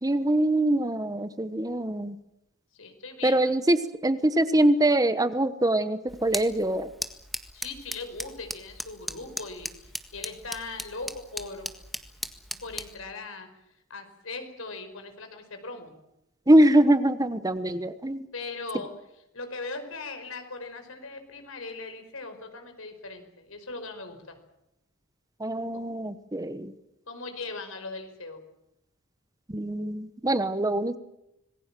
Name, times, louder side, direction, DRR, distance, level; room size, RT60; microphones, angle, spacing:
voice 1, 0.0-2.2 3.2-6.9 16.5-18.3 25.4-26.7 29.5-31.0, right 1 dB, 15° right, 12 dB, 1.1 m, -23 dB
voice 2, 2.7-3.5 7.5-11.7 12.6-13.5 13.9-15.9 18.3-18.9 19.3-24.4 25.7-25.8 27.1-28.4, left 3 dB, 75° left, 7 dB, 5.2 m, -39 dB
sound 1, 6.1-13.0, equal, ahead, 1.7 m, -38 dB
27.0 x 20.5 x 7.6 m, 0.84 s
head